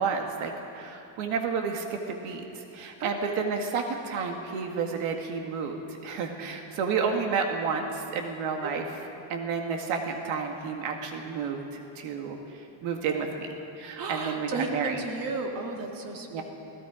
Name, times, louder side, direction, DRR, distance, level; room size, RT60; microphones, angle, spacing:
voice 1, 0.0-15.0 16.3-16.4, right 5 dB, 75° right, 3 dB, 2.0 m, -31 dB
voice 2, 3.0-3.4 8.6-8.7 14.0-16.4, right 3 dB, 45° right, 2 dB, 2.3 m, -34 dB
29.5 x 18.5 x 5.0 m, 3.0 s
cardioid pair, 175°, 48 cm